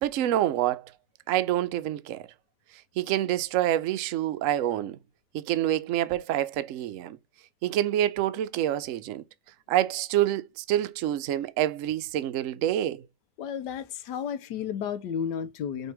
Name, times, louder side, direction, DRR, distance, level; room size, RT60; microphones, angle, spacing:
voice 1, 0.0-0.9 1.3-2.2 3.0-5.0 5.3-7.2 7.6-9.2 9.7-13.0, right 12 dB, 65° right, 0.8 m, -27 dB
voice 2, 13.4-15.9, left 8 dB, 85° left, 1.3 m, -32 dB
5.2 x 4.5 x 4.8 m
omnidirectional pair, 1.8 m